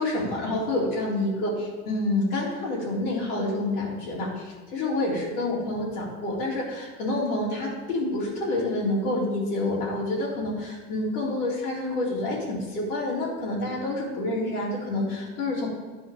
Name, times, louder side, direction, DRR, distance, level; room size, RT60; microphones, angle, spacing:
voice 1, 0.0-15.7, left 2 dB, 85° left, -5 dB, 3.9 m, -28 dB
10.0 x 5.2 x 7.7 m, 1.3 s
hypercardioid pair, 100°, 43 cm